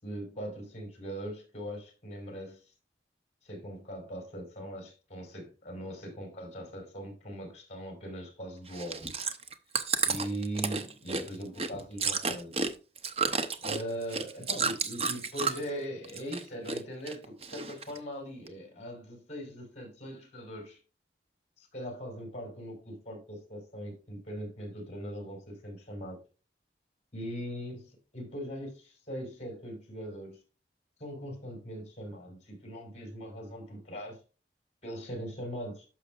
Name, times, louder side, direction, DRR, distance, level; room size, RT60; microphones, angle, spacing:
voice 1, 0.0-2.7 3.4-9.1 10.0-12.6 13.6-20.8 21.6-26.2 27.1-30.4 31.0-34.2 34.8-35.8, equal, 40° left, 4.8 m, -40 dB
Chewing mastication, 8.7-15.7 16.0-16.8 17.1-18.0 18.5-18.6, right 5 dB, 35° right, 0.9 m, -31 dB
11.5 x 6.7 x 2.5 m
head